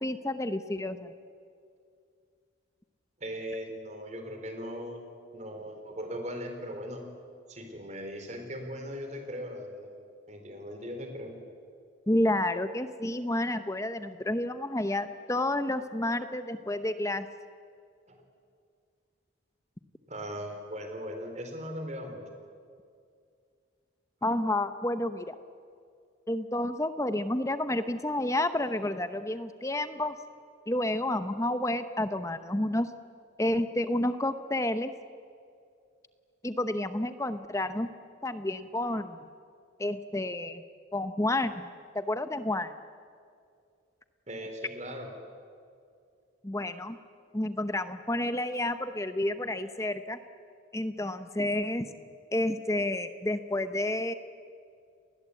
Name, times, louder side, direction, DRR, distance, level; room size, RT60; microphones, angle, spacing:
voice 1, 0.0-1.1 12.1-17.3 24.2-25.3 26.3-30.1 30.7-32.9 33.4-34.9 36.4-37.9 38.2-39.2 39.8-40.6 40.9-41.7 41.9-42.7 46.4-47.0 47.3-50.2 50.7-51.9 52.3-54.1, left 1 dB, 15° left, 11 dB, 0.8 m, -30 dB
voice 2, 3.2-7.0 7.5-9.9 10.3-11.4 18.1-18.2 20.1-22.2 44.3-45.1, equal, 35° right, 5 dB, 3.8 m, -39 dB
29.5 x 20.0 x 8.3 m, 2.3 s
head